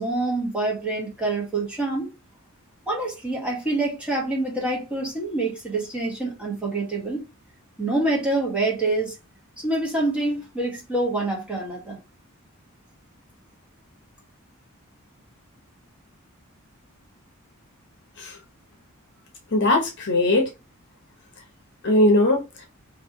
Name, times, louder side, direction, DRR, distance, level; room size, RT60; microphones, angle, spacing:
voice 1, 0.0-2.1 2.9-7.2 7.8-9.2 9.6-12.0, right 2 dB, 5° right, 1.2 m, -26 dB
voice 2, 19.5-20.5 21.8-22.6, left 1 dB, 55° left, 0.8 m, -20 dB
3.1 x 2.6 x 2.7 m
head